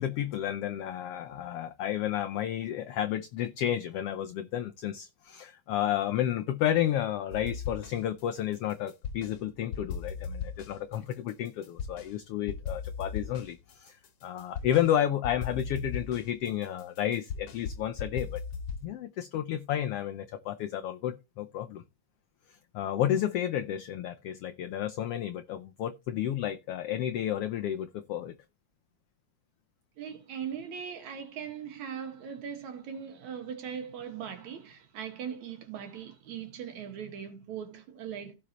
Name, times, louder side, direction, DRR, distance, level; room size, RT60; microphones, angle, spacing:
voice 1, 0.0-14.0 14.2-18.4 18.8-21.8 22.7-28.3, left 11 dB, 85° left, 1.3 m, -31 dB
sound 1, 7.3-8.2 8.5-9.4 9.7-12.1 12.5-14.9 15.2-18.9, left 6 dB, 55° left, 2.1 m, -38 dB
voice 2, 30.0-38.4, right 8 dB, 70° right, 3.0 m, -40 dB
16.0 x 5.5 x 3.0 m
omnidirectional pair, 3.4 m